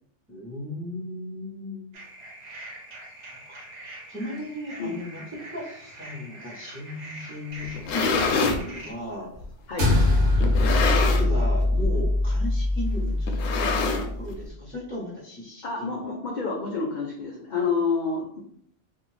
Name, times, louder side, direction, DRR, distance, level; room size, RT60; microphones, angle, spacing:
voice 1, 0.3-1.9 3.5-3.6 4.1-5.2 5.5-9.3 10.0-10.1 10.4-16.2, left 1 dB, 10° right, -6 dB, 0.9 m, -36 dB
sound 1, 1.9-8.9, right 1 dB, 45° right, 0.6 m, -43 dB
sound 2, 7.6-8.6 9.4-9.5 10.4-11.4 11.7-12.0 12.3-12.4 13.3-14.3, left 4 dB, 90° left, 0.9 m, -25 dB
sound 3, 9.8-14.3, left 2 dB, 75° right, 1.1 m, -23 dB
voice 2, 15.6-18.4, left 4 dB, 60° left, -1 dB, 0.5 m, -28 dB
2.6 x 2.4 x 3.2 m, 0.65 s
omnidirectional pair, 1.3 m